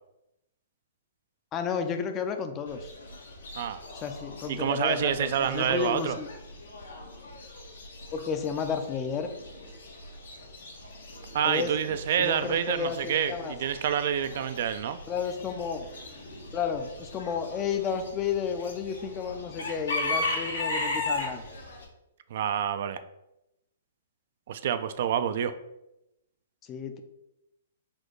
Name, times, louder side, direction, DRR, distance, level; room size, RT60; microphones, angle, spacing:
voice 1, 1.5-2.9 3.9-6.3 8.1-9.3 11.4-13.5 15.1-15.9 16.5-21.4 26.7-27.0, left 6 dB, 25° left, 7 dB, 0.4 m, -32 dB
Chicken rooster / Bird, 2.7-21.8, left 2 dB, 90° left, 1.2 m, -38 dB
voice 2, 4.5-6.2 11.3-15.0 22.3-23.0 24.5-25.5, right 9 dB, 55° right, 12 dB, 0.3 m, -28 dB
4.3 x 2.3 x 4.6 m, 0.88 s
hypercardioid pair, 145°, 0 cm